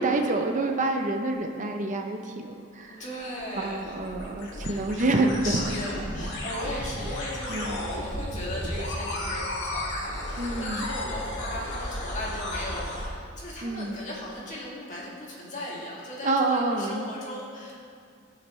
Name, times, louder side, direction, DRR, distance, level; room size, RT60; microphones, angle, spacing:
voice 1, 0.0-3.0 3.5-5.6 7.5-7.9 10.4-10.9 13.6-14.0 16.2-17.0, right 2 dB, 35° right, 3 dB, 0.6 m, -27 dB
voice 2, 2.9-4.0 4.6-4.9 5.4-17.8, left 1 dB, 35° left, -5 dB, 2.3 m, -37 dB
sound 1, 3.2-13.1, left 1 dB, 60° left, 1.9 m, -34 dB
18.5 x 6.2 x 3.1 m, 2.3 s
head